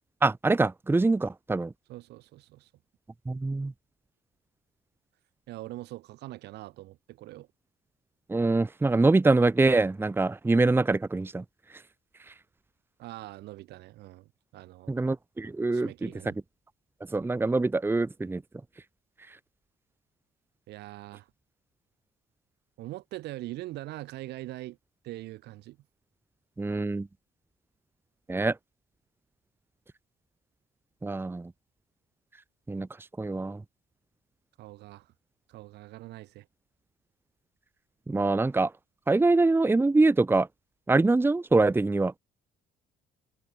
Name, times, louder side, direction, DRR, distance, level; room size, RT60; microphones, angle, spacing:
voice 1, 0.2-1.7 3.3-3.7 8.3-11.4 11.7-11.8 12.3-12.4 14.9-16.3 17.1-18.4 19.3-19.4 26.6-27.1 28.3-28.6 31.0-31.5 32.7-32.9 33.2-33.6 38.1-38.7 39.1-40.5 40.9-42.1, right 3 dB, 15° right, 1.2 m, -24 dB
voice 2, 1.9-2.7 5.5-7.5 13.0-14.9 15.7-16.4 20.7-21.3 22.8-24.8 25.0-25.8 34.6-35.1 35.5-36.5, right 17 dB, 80° right, 7.2 m, -42 dB
cardioid pair, 110°, 17 cm